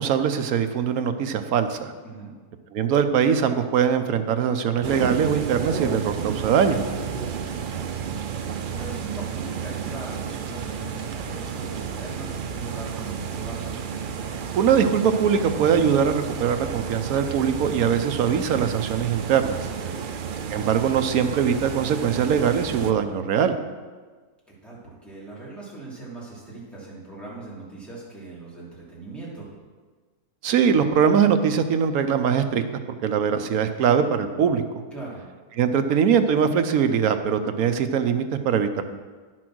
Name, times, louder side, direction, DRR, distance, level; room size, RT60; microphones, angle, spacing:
voice 1, 0.0-1.9 2.7-6.8 14.5-19.7 20.5-23.5 30.4-32.6 33.0-34.6 35.6-38.8, right 7 dB, 70° right, 8 dB, 1.1 m, -22 dB
sound 1, 4.8-22.9, right 7 dB, 90° right, 0.4 m, -32 dB
voice 2, 7.2-7.9 8.7-13.7 19.8-20.0 24.6-29.5 34.9-35.2, right 3 dB, ahead, -7 dB, 3.0 m, -40 dB
10.0 x 6.2 x 6.1 m, 1.4 s
omnidirectional pair, 1.6 m